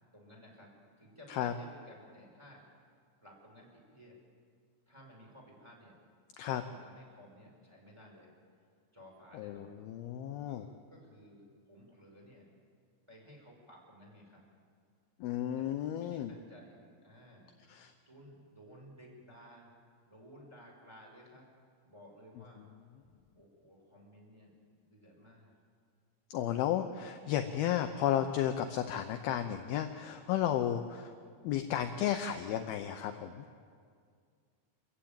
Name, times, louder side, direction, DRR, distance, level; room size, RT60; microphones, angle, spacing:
voice 1, 0.1-0.7 1.0-2.6 3.2-4.1 4.9-5.9 6.6-8.3 8.9-9.8 10.5-12.5 13.1-14.4 15.5-19.8 20.0-21.5 21.8-22.7 23.3-24.5 24.8-25.6, equal, 5° right, -2 dB, 4.6 m, -56 dB
voice 2, 9.3-10.6 15.2-16.3 17.7-17.9 26.3-31.1 31.4-33.5, left 10 dB, 80° left, 7 dB, 2.2 m, -33 dB
27.5 x 15.0 x 8.9 m, 2.1 s
omnidirectional pair, 5.3 m